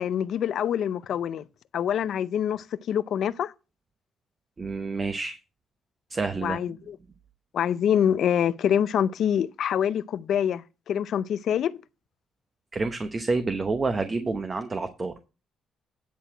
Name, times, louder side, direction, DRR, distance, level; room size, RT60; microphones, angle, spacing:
voice 1, 0.0-1.4 1.7-3.5 6.4-7.0 7.5-11.7, left 9 dB, 70° left, 0.5 m, -25 dB
voice 2, 4.6-5.4 6.1-6.6 12.7-15.3, right 3 dB, 30° right, 0.9 m, -28 dB
10.5 x 4.1 x 7.6 m
cardioid pair, 90°, 0 cm